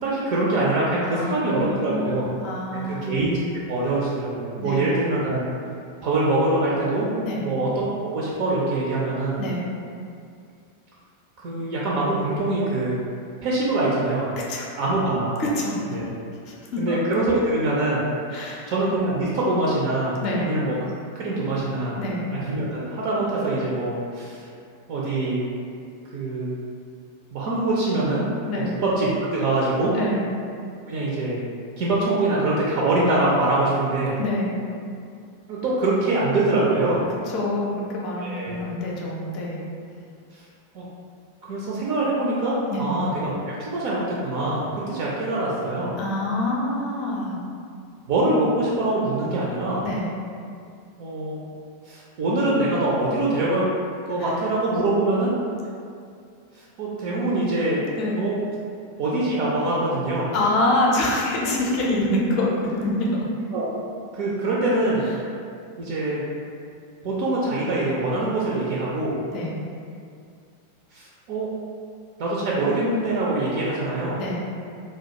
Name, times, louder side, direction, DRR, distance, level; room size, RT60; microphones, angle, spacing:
voice 1, 0.0-2.3 2.7-3.4 3.7-5.4 6.0-7.1 7.4-7.9 8.1-9.4 11.4-13.0 13.4-14.3 14.8-15.4 15.9-16.0 16.8-18.0 18.7-20.7 21.1-22.0 22.3-24.4 24.9-25.4 26.1-26.5 27.3-28.3 28.8-29.9 30.9-31.4 31.8-34.2 35.5-37.0 38.2-38.5 40.7-40.8 41.5-45.9 48.1-49.8 51.0-51.4 51.9-53.6 54.1-55.3 56.8-57.8 58.1-58.4 59.0-60.3 61.5-61.6 63.5-63.7 64.1-65.0 65.8-66.2 67.0-69.1 70.9-71.5 72.2-74.2, right 2 dB, 45° right, -5 dB, 0.4 m, -24 dB
voice 2, 1.0-3.1 4.6-4.9 7.2-7.4 9.4-9.6 14.3-14.7 15.4-15.8 16.4-17.0 18.3-18.7 20.2-20.5 22.0-22.2 28.5-28.7 29.9-30.2 34.2-34.5 37.3-39.6 42.7-42.9 46.0-47.4 49.8-50.1 54.2-54.3 58.0-58.2 60.3-63.2 69.3-69.6 74.2-74.4, left 1 dB, 40° left, -4 dB, 0.5 m, -26 dB
2.2 x 2.1 x 2.8 m, 2.3 s
figure-of-eight pair, 90°, 0 cm